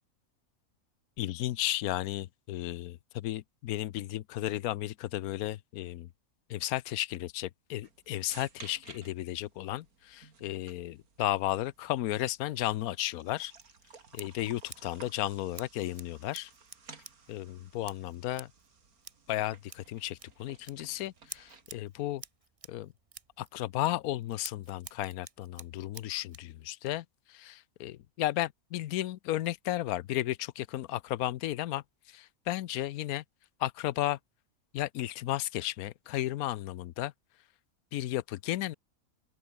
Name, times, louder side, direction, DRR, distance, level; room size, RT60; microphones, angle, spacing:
voice 1, 1.2-6.1 6.5-13.5 14.1-16.5 17.3-18.5 19.3-22.2 22.7-22.9 23.4-33.2 33.6-34.2 34.7-37.1 37.9-38.8, left 14 dB, 80° left, 1.1 m, -34 dB
sound 1, 7.8-21.8, right 5 dB, 80° right, 2.9 m, -56 dB
Scissors, 13.6-26.5, right 4 dB, 25° right, 1.1 m, -52 dB
open air
omnidirectional pair, 1.5 m